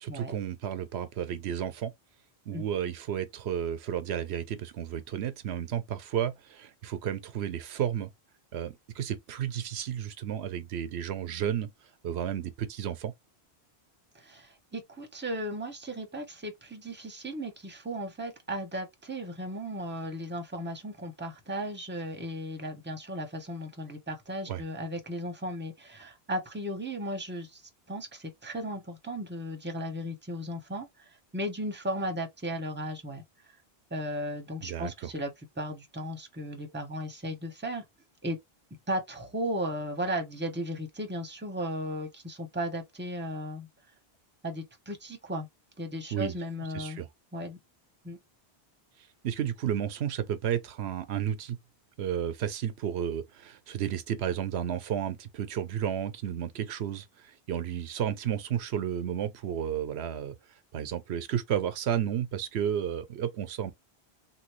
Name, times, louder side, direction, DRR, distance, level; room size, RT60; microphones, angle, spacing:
voice 1, 0.0-1.9 2.5-8.1 8.5-11.7 12.0-13.1 24.5-24.6 34.6-35.1 46.1-46.3 46.7-47.1 49.2-51.6 52.0-60.4 60.7-63.7, right 9 dB, 85° right, 0.9 m, -32 dB
voice 2, 14.1-27.6 27.9-31.1 31.3-33.2 33.9-37.8 38.2-38.4 38.9-43.7 44.4-45.5 45.8-47.0 47.3-47.6 48.0-48.2, equal, 10° right, 0.9 m, -35 dB
3.0 x 2.6 x 3.0 m
omnidirectional pair, 1.1 m